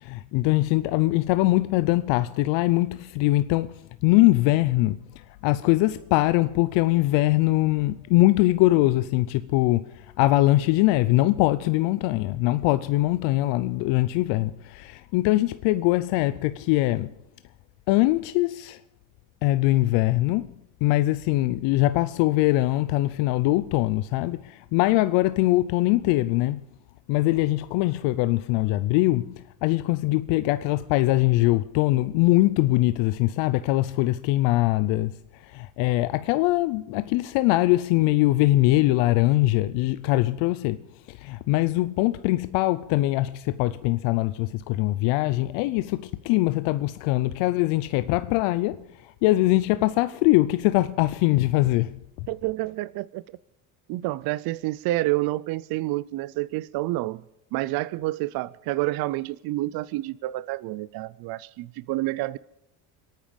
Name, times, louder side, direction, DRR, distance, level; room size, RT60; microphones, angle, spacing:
voice 1, 0.0-5.0 5.4-17.1 17.9-18.8 19.4-20.5 20.8-26.6 27.1-29.3 29.6-35.2 35.5-40.8 41.1-48.8 49.2-52.0, left 18 dB, 75° left, 0.7 m, -22 dB
voice 2, 52.3-53.2 53.9-57.2 57.5-62.4, right 18 dB, 55° right, 0.5 m, -28 dB
27.0 x 9.2 x 5.2 m
cardioid pair, 120°, 44 cm